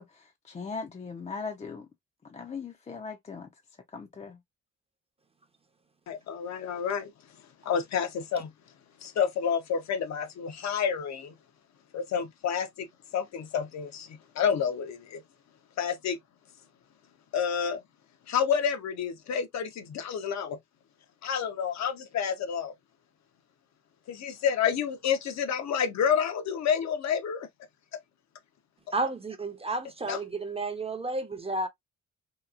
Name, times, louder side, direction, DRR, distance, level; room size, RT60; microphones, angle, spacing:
voice 1, 0.0-1.9 2.2-3.5 3.9-4.4, left 4 dB, 25° left, 0.5 m, -39 dB
voice 2, 6.1-7.1 7.6-8.5 9.0-11.3 11.9-12.9 13.1-15.2 15.8-16.2 17.3-17.8 18.3-20.6 21.2-22.7 24.1-27.5 30.1-30.2, left 7 dB, 65° left, 0.7 m, -29 dB
voice 3, 28.9-31.7, right 2 dB, 20° right, 0.6 m, -32 dB
2.9 x 2.3 x 2.3 m
cardioid pair, 90°, 30 cm